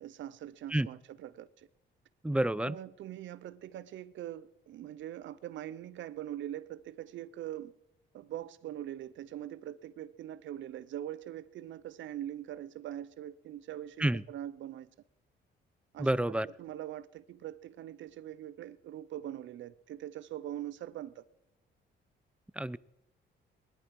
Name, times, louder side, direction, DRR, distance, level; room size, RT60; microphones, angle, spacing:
voice 1, 0.0-1.7 2.6-7.7 8.1-14.9 15.9-21.2, right 12 dB, 70° right, 0.6 m, -42 dB
voice 2, 2.2-2.8 14.0-14.2 16.0-16.5 22.6-22.8, right 1 dB, 5° right, 0.4 m, -29 dB
20.0 x 11.0 x 4.7 m
cardioid pair, 90°, 20 cm